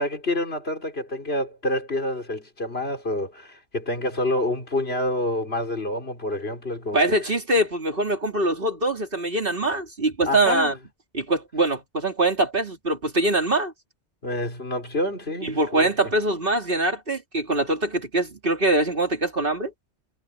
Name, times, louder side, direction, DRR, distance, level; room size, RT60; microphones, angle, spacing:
voice 1, 0.0-7.3 10.2-10.8 14.2-15.9, left 1 dB, 65° left, 4.6 m, -28 dB
voice 2, 6.9-10.7 11.1-13.7 15.4-19.7, right 2 dB, 55° right, 3.4 m, -23 dB
omnidirectional pair, 1.1 m